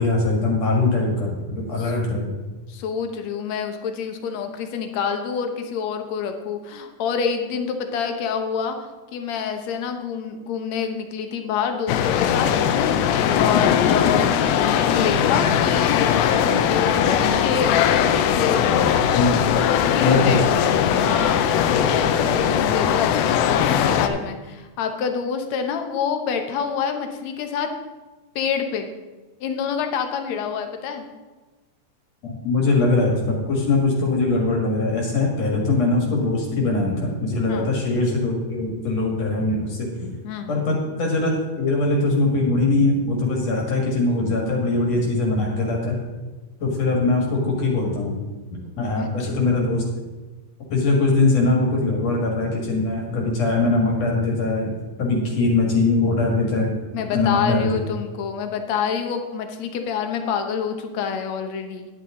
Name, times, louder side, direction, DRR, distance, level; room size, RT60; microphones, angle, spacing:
voice 1, 0.0-2.3 19.2-19.3 20.0-20.4 32.2-40.2 40.5-46.0 46.6-48.1 48.5-49.8 50.7-54.7 55.0-56.8 57.1-57.8, left 3 dB, 50° left, -1 dB, 2.8 m, -21 dB
voice 2, 2.7-17.8 18.4-18.7 19.7-20.5 20.9-27.7 28.4-28.9 29.4-31.1 37.5-37.7 39.9-40.5 49.0-49.3 56.9-61.9, left 6 dB, 65° left, 6 dB, 1.8 m, -27 dB
sound 1, 11.9-24.1, left 8 dB, 85° left, 2.5 m, -20 dB
11.0 x 9.7 x 3.8 m, 1.3 s
omnidirectional pair, 4.1 m